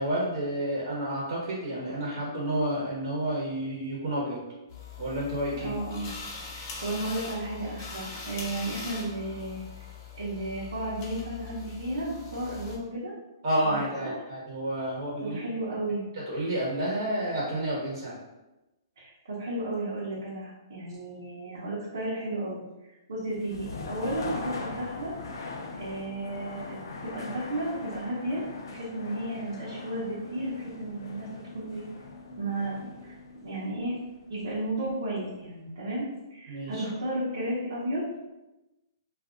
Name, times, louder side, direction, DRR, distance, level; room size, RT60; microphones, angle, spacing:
voice 1, 0.0-4.4 5.0-5.7 13.4-15.5 16.3-18.2 36.5-36.8, right 1 dB, 60° right, -4 dB, 1.1 m, -30 dB
sound 1, 4.7-12.8, left 5 dB, 35° left, 0.7 m, -41 dB
voice 2, 5.6-6.1 6.5-9.9 10.1-13.1 13.6-14.1 15.2-16.0 19.0-22.6 23.1-25.1 25.8-31.3 31.5-31.9 32.4-33.1 33.4-34.0 34.3-38.0, right 1 dB, 85° right, -9 dB, 1.0 m, -33 dB
sound 2, 23.2-35.1, left 3 dB, 75° left, 0.5 m, -41 dB
2.6 x 2.4 x 3.7 m, 0.99 s
hypercardioid pair, 155°, 2 cm